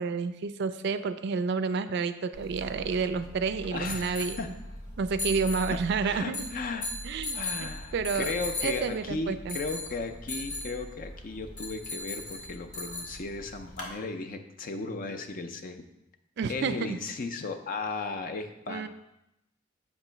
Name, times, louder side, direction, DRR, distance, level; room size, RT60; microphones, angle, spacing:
voice 1, 0.0-4.4 5.0-6.5 7.0-8.3 8.6-9.6 16.4-17.0 18.7-18.9, right 5 dB, 60° right, 11 dB, 0.4 m, -30 dB
sound 1, 2.3-13.9, left 2 dB, 85° left, 1.9 m, -38 dB
voice 2, 3.7-4.5 5.7-6.9 7.3-15.8 16.5-18.9, left 3 dB, 45° left, 7 dB, 0.5 m, -36 dB
7.0 x 3.0 x 5.6 m, 0.86 s
head